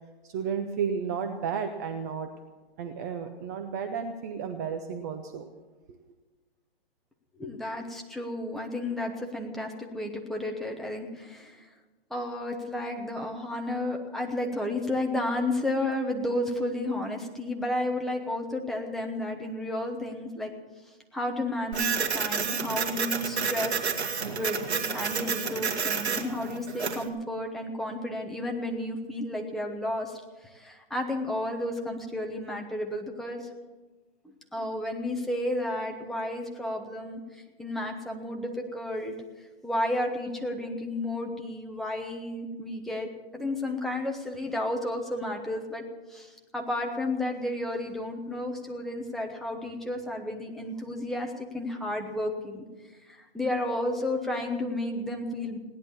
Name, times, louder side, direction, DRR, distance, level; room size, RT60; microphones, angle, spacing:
voice 1, 0.2-2.3 2.8-5.5 5.9-6.0, right 6 dB, 15° right, 6 dB, 0.5 m, -32 dB
voice 2, 7.4-11.7 12.1-20.5 21.1-23.8 24.2-33.5 34.5-45.8 46.1-52.6 53.1-55.6, left 1 dB, ahead, 1 dB, 1.0 m, -32 dB
Printer, 21.7-27.1, right 6 dB, 85° right, 2.0 m, -30 dB
17.0 x 10.5 x 7.1 m, 1.2 s
hypercardioid pair, 150°, 32 cm